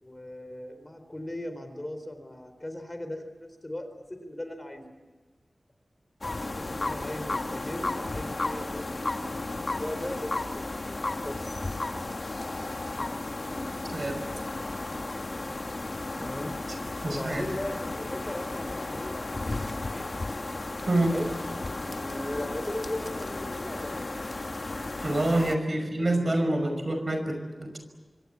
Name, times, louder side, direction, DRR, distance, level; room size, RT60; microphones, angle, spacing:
voice 1, 0.0-4.9 6.6-10.7 11.2-11.5 16.2-16.6 17.1-20.1 21.1-21.4 21.9-24.1 25.6-26.9, left 1 dB, 25° left, 8 dB, 3.8 m, -38 dB
sound 1, 6.2-25.5, left 2 dB, 50° left, 1.6 m, -34 dB
voice 2, 17.0-17.4 20.9-21.1 25.0-27.8, right 1 dB, 50° right, 6 dB, 5.5 m, -27 dB
26.0 x 25.0 x 8.6 m, 1.3 s
wide cardioid pair, 80°, 0 cm